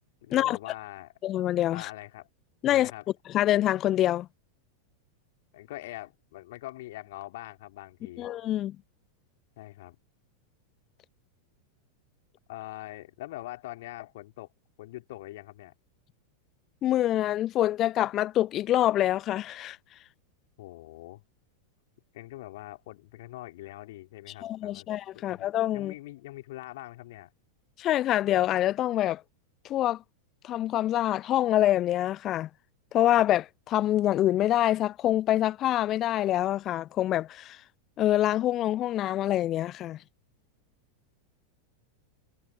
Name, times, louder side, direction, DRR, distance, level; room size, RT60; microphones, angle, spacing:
voice 1, 0.2-1.1 1.7-2.3 2.7-3.0 5.5-8.3 9.6-10.0 12.5-14.5 14.8-15.7 20.6-21.2 22.1-24.9 25.3-27.3, left 17 dB, 55° left, 4.1 m, -43 dB
voice 2, 1.2-1.9 2.6-2.9 3.3-4.3 8.2-8.8 16.8-19.8 24.4-25.9 27.8-29.2 29.6-30.0 30.4-32.5 32.9-37.6 38.0-40.0, left 13 dB, 30° left, 0.9 m, -25 dB
figure-of-eight pair, 90°, 0 cm